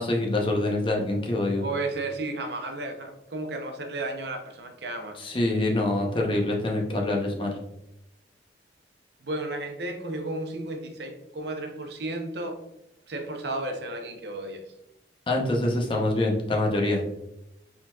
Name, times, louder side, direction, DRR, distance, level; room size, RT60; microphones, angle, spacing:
voice 1, 0.0-1.6 5.2-7.5 15.3-17.0, left 1 dB, 30° left, 0 dB, 0.7 m, -25 dB
voice 2, 1.6-5.3 9.2-12.6 13.1-14.7, right 2 dB, 65° right, 5 dB, 0.7 m, -33 dB
4.9 x 3.9 x 2.3 m, 0.84 s
head